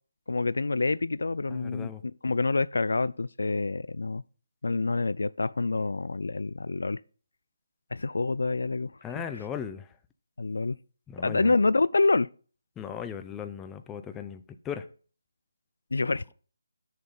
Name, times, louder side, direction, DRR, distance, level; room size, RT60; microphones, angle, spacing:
voice 1, 0.3-4.2 4.6-7.0 7.9-8.9 9.2-9.3 10.4-10.8 11.2-12.3 15.9-16.3, left 3 dB, 80° left, 0.3 m, -27 dB
voice 2, 1.5-2.0 9.0-9.9 11.1-11.5 12.8-14.8, left 8 dB, 10° left, 0.5 m, -37 dB
6.5 x 6.2 x 5.6 m
figure-of-eight pair, 160°, 0 cm